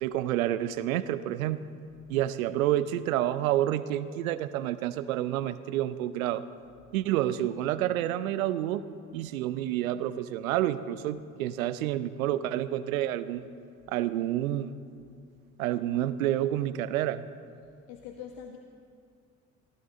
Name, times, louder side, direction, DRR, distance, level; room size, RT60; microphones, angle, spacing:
voice 1, 0.0-1.6 2.1-6.4 6.9-8.8 9.1-13.5 13.9-14.8 15.6-17.2, right 13 dB, 80° right, 15 dB, 0.5 m, -29 dB
voice 2, 17.9-18.6, left 8 dB, 65° left, 5 dB, 0.8 m, -43 dB
15.5 x 13.0 x 3.7 m, 2.3 s
figure-of-eight pair, 50°, 41 cm